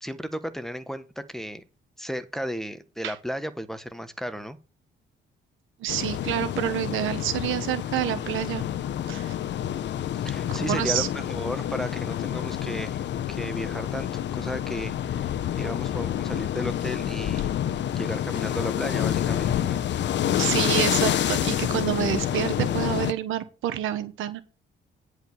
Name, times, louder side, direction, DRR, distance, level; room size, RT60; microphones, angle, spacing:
voice 1, 0.0-1.6 2.0-4.6 10.2-17.5 18.0-19.8, equal, ahead, 9 dB, 1.3 m, -34 dB
voice 2, 5.8-8.6 9.1-9.3 10.7-11.1 20.3-24.4, right 12 dB, 90° right, 10 dB, 1.3 m, -28 dB
sound 1, 5.9-23.1, left 10 dB, 65° left, 0.8 m, -28 dB
10.5 x 4.9 x 7.2 m, 0.33 s
cardioid pair, 90°, 20 cm